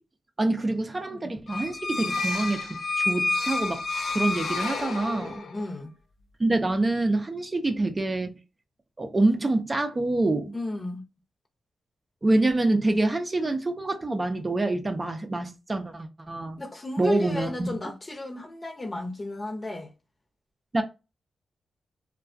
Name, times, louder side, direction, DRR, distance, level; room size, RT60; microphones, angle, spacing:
voice 1, 0.4-3.8 4.1-5.4 6.4-8.3 9.0-10.5 12.2-16.6 17.0-17.8 20.7-20.8, right 2 dB, 30° right, 0.5 m, -26 dB
sound 1, 1.5-5.6, left 3 dB, 65° left, 0.4 m, -29 dB
voice 2, 5.2-5.9 10.5-11.0 16.6-19.9, left 2 dB, 35° left, 0.8 m, -34 dB
2.3 x 2.2 x 2.5 m
supercardioid pair, 45°, 0 cm